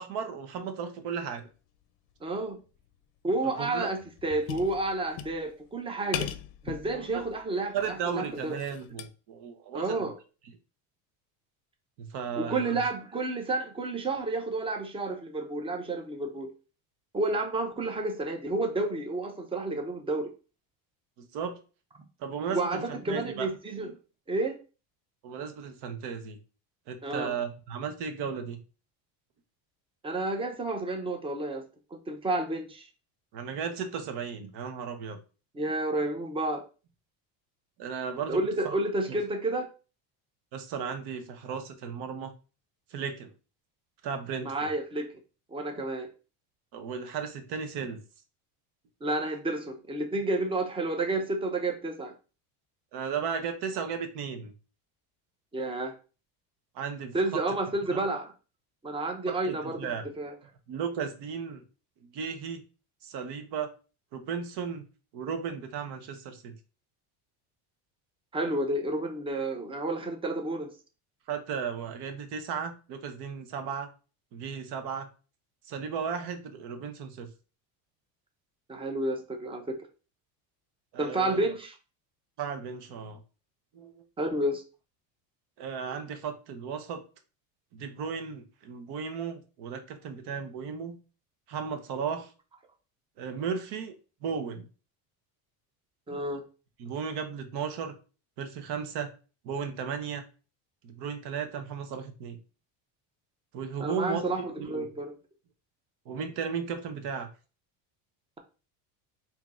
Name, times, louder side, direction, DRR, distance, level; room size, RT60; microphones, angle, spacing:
voice 1, 0.0-1.5 3.4-3.9 6.9-7.2 7.7-10.1 12.0-12.8 21.2-21.6 22.2-22.8 23.1-23.5 25.2-26.4 26.9-28.6 33.3-35.2 37.8-38.4 38.6-38.7 40.5-42.3 42.9-43.3 44.0-44.7 46.7-48.0 52.9-54.5 56.7-57.4 59.3-60.1 60.7-61.6 62.0-62.6 63.0-63.7 64.1-64.8 65.1-66.6 71.3-73.9 74.3-75.1 75.7-77.3 80.9-81.4 82.4-83.2 83.7-84.0 85.6-87.0 87.7-91.0 91.5-92.3 93.2-93.9 94.2-94.7 96.8-97.9 98.4-99.1 99.4-100.2 100.8-102.4 103.5-104.3 104.6-104.9 106.1-107.3, right 6 dB, 60° right, 8 dB, 1.0 m, -35 dB
voice 2, 2.2-2.6 3.2-6.3 6.6-8.6 9.7-10.1 12.4-16.5 17.1-20.3 22.5-23.9 24.3-24.6 27.0-27.3 30.0-32.9 35.5-36.6 38.3-39.7 44.4-45.1 45.5-46.1 49.0-52.1 55.5-55.9 57.1-58.3 58.8-59.9 60.2-60.3 68.3-70.7 78.7-79.8 81.0-81.8 84.2-84.6 96.1-96.4 103.8-105.1, right 2 dB, 10° right, 4 dB, 0.6 m, -30 dB
sound 1, 2.6-2.9 3.3-3.4 3.7-5.7 6.1-7.4 7.8-9.1, left 10 dB, 55° left, 0.6 m, -39 dB
3.6 x 2.8 x 3.6 m, 0.35 s
cardioid pair, 125°, 45 cm